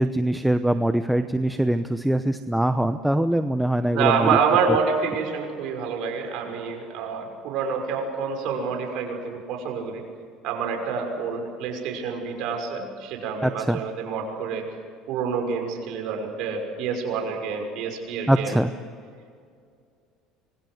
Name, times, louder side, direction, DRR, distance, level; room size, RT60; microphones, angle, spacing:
voice 1, 0.0-4.4 4.7-4.8 13.4-13.8 18.3-18.7, right 1 dB, 5° right, 9 dB, 0.9 m, -22 dB
voice 2, 3.9-10.0 10.4-14.6 15.1-18.6, right 5 dB, 65° right, 3 dB, 5.9 m, -27 dB
25.5 x 23.0 x 8.0 m, 2.3 s
supercardioid pair, 100°, 0 cm